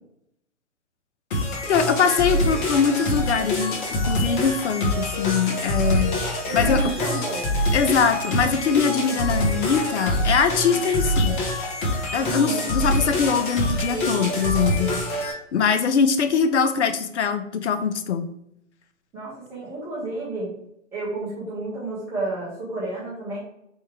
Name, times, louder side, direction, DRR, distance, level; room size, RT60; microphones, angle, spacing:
sound 1, 1.3-15.3, left 1 dB, 40° left, 1.0 m, -25 dB
voice 1, 1.7-6.1 6.5-6.8 7.7-11.4 12.1-14.9 15.5-18.3, left 6 dB, 60° left, 8 dB, 0.5 m, -22 dB
voice 2, 6.4-7.5 12.2-12.7 19.1-20.5 20.9-23.4, right 2 dB, 5° right, -7 dB, 0.5 m, -31 dB
3.5 x 2.7 x 3.4 m, 0.78 s
figure-of-eight pair, 130°, 39 cm